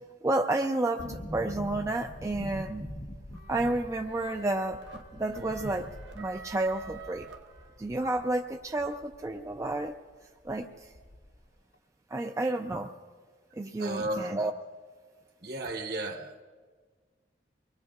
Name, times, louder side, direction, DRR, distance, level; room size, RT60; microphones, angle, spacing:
voice 1, 0.2-2.9 3.5-5.9 6.2-7.3 7.8-9.9 10.4-10.7 12.1-12.9 13.5-14.5, right 2 dB, 15° right, 3 dB, 0.4 m, -30 dB
sound 1, 1.0-9.8 10.1-10.2 10.4-11.5 11.7-11.8, equal, 80° left, 1.7 m, -44 dB
sound 2, 3.3-8.1, right 4 dB, 80° right, 0.8 m, -49 dB
voice 2, 13.8-14.3 15.4-16.4, right 1 dB, 60° right, 1 dB, 1.3 m, -34 dB
24.0 x 20.0 x 2.4 m, 1.5 s
head